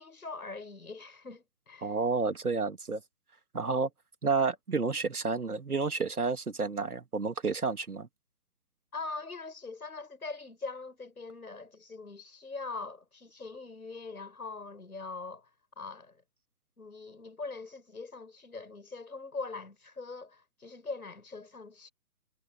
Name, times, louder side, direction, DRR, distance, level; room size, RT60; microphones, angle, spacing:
voice 1, 0.0-2.0 8.9-15.5 15.8-16.2 16.8-21.9, left 3 dB, 75° left, 6.9 m, -42 dB
voice 2, 1.8-3.0 3.5-3.9 4.2-8.1, right 4 dB, 75° right, 2.3 m, -30 dB
figure-of-eight pair, 140°, 45 cm